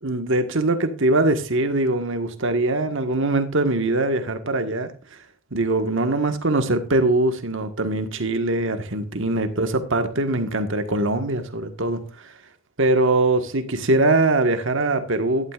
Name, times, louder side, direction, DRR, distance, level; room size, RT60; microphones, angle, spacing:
voice 1, 0.0-4.9 5.5-12.0 12.8-15.5, right 2 dB, 60° right, 1.6 m, -22 dB
12.0 x 11.5 x 2.5 m
head